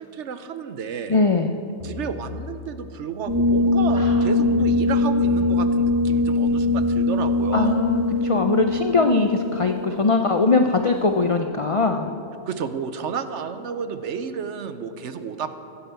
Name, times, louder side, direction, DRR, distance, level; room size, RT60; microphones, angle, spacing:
voice 1, 0.0-1.2 1.8-7.8 12.5-15.6, right 6 dB, 65° right, 10 dB, 1.0 m, -31 dB
voice 2, 1.1-1.6 4.0-4.7 7.5-12.1, left 3 dB, 50° left, 5 dB, 0.3 m, -21 dB
sound 1, 1.8-4.5, left 4 dB, 25° left, 2.1 m, -41 dB
sound 2, 3.3-10.8, left 2 dB, 15° right, 1.2 m, -22 dB
14.5 x 8.1 x 8.1 m, 2.8 s
omnidirectional pair, 1.3 m